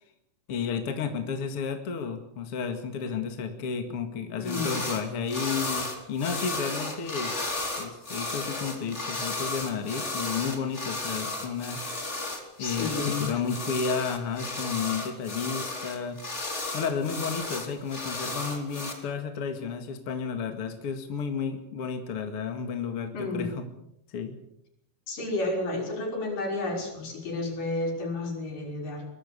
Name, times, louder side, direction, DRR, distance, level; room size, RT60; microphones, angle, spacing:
voice 1, 0.5-7.4 7.8-11.8 12.6-16.2 16.7-23.6 24.1-24.4, left 6 dB, 45° left, 6 dB, 2.7 m, -32 dB
voice 2, 4.4-4.8 12.6-13.2 23.1-23.5 25.1-29.1, left 2 dB, 75° left, 2 dB, 7.6 m, -31 dB
sound 1, 4.4-5.0 5.3-18.9, left 2 dB, 20° left, 4.1 m, -34 dB
24.0 x 21.5 x 6.8 m, 0.74 s
omnidirectional pair, 3.9 m